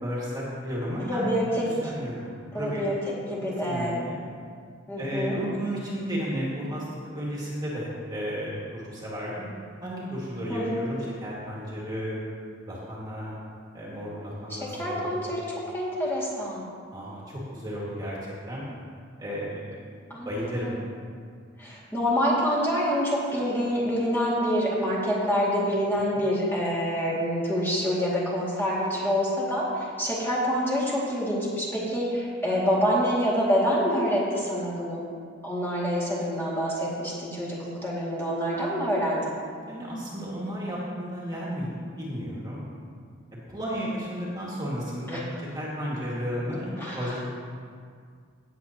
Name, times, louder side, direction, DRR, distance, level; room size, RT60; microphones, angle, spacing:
voice 1, 0.0-1.3 1.6-2.8 3.6-4.2 5.0-9.5 9.8-12.2 12.6-13.4 13.7-15.2 16.9-18.2 18.5-18.6 19.2-20.0 20.3-20.8 26.1-26.2 39.6-42.7 43.5-46.7 46.9-47.2, equal, 20° right, -6 dB, 2.0 m, -33 dB
voice 2, 1.0-1.9 2.5-3.0 3.3-4.0 4.9-5.4 10.5-10.9 14.5-15.4 15.7-16.7 20.1-20.8 21.6-35.0 35.4-39.3 45.1-45.2 46.8-47.2, equal, 10° left, -7 dB, 2.3 m, -27 dB
17.5 x 7.8 x 2.9 m, 2.1 s
head